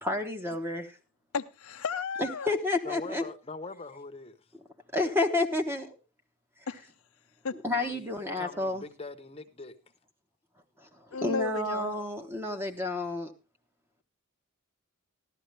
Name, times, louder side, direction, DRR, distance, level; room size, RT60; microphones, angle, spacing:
voice 1, 0.0-0.9 2.2-3.3 4.9-5.9 7.5-8.8 11.2-13.3, left 2 dB, 10° right, 1.1 m, -30 dB
voice 2, 1.3-2.5 6.7-6.8 7.4-7.6 11.1-12.0, left 5 dB, 80° left, 0.7 m, -34 dB
voice 3, 2.8-4.3 7.7-9.7, left 3 dB, 25° left, 0.9 m, -43 dB
14.0 x 12.0 x 3.3 m
head